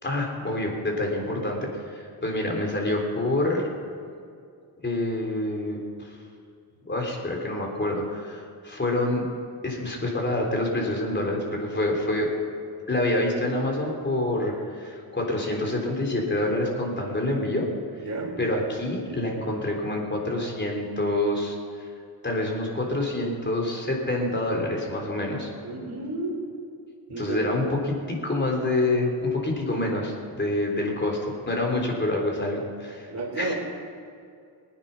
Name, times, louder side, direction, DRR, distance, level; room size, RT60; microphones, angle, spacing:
voice 1, 0.0-3.7 4.8-5.8 6.1-6.2 6.9-9.2 9.6-12.3 12.9-17.7 18.4-21.9 22.2-25.5 27.2-33.1 33.4-33.5, left 1 dB, 25° left, 0 dB, 3.7 m, -27 dB
voice 2, 18.0-18.4 25.6-26.5 27.1-27.4 33.1-33.5, right 2 dB, 40° right, -7 dB, 4.0 m, -32 dB
19.5 x 9.8 x 5.6 m, 2.3 s
cardioid pair, 75°, 44 cm